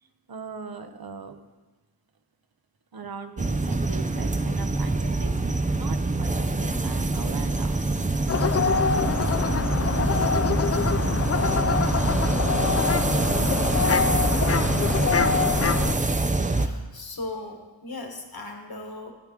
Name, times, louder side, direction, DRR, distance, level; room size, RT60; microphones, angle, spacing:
voice 1, 0.0-1.4 2.9-7.8, right 5 dB, 50° right, 8 dB, 0.9 m, -40 dB
sound 1, 3.4-16.7, right 2 dB, 15° right, 0.5 m, -25 dB
sound 2, 8.3-15.9, left 5 dB, 35° left, 0.4 m, -25 dB
voice 2, 16.5-19.1, left 2 dB, 50° left, 3 dB, 1.6 m, -38 dB
14.5 x 8.3 x 3.7 m, 1.2 s
wide cardioid pair, 90°, 47 cm